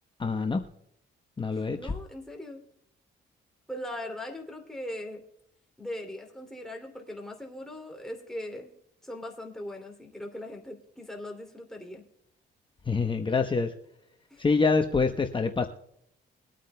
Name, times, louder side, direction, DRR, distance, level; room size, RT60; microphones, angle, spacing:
voice 1, 0.2-0.6 1.4-1.9 12.9-13.7 14.4-15.7, left 4 dB, 25° left, 5 dB, 0.9 m, -26 dB
voice 2, 1.5-2.6 3.7-5.2 5.8-8.7 9.0-12.0 14.3-14.6, left 1 dB, ahead, 0 dB, 2.6 m, -40 dB
23.0 x 9.0 x 2.2 m, 0.77 s
cardioid pair, 90°, 20 cm